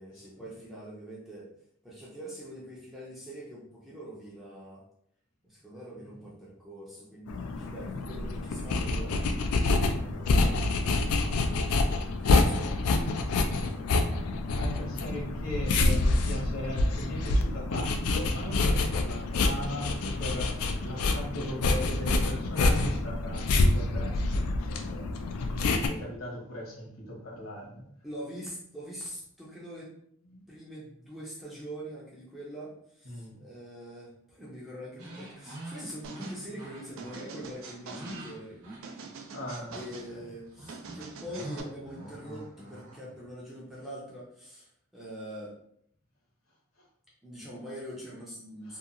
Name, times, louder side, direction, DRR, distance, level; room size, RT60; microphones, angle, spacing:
voice 1, 0.0-1.5 1.8-4.8 5.5-9.3 9.7-10.6 11.5-13.0 13.3-13.9 28.0-29.9 30.5-38.6 39.7-45.6 47.2-48.8, equal, ahead, -7 dB, 0.5 m, -43 dB
sound 1, 7.3-25.9, left 2 dB, 85° left, 0.3 m, -27 dB
voice 2, 14.5-25.1 25.7-27.9 30.2-30.5 33.0-33.4 39.3-39.8 40.1-40.2 48.6-48.8, equal, 65° left, -4 dB, 1.0 m, -38 dB
sound 2, 35.0-39.4 39.7-43.3, right 1 dB, 80° right, 0.8 m, -46 dB
sound 3, 36.0-36.4 37.0-38.2 38.8-40.1 40.7-41.6, right 4 dB, 65° right, 0.3 m, -44 dB
2.8 x 2.3 x 2.5 m, 0.69 s
head